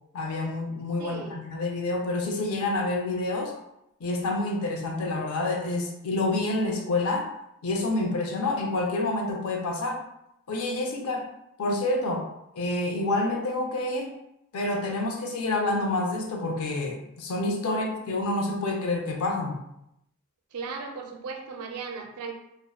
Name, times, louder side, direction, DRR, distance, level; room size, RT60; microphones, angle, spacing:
voice 1, 0.1-3.5 4.0-7.3 7.6-10.0 10.5-11.3 11.6-12.3 12.5-14.1 14.5-19.6, left 2 dB, 80° left, 1 dB, 0.5 m, -28 dB
voice 2, 1.0-1.4 17.6-17.8 20.5-22.3, right 5 dB, 90° right, 3 dB, 0.4 m, -36 dB
2.6 x 2.0 x 2.3 m, 0.81 s
head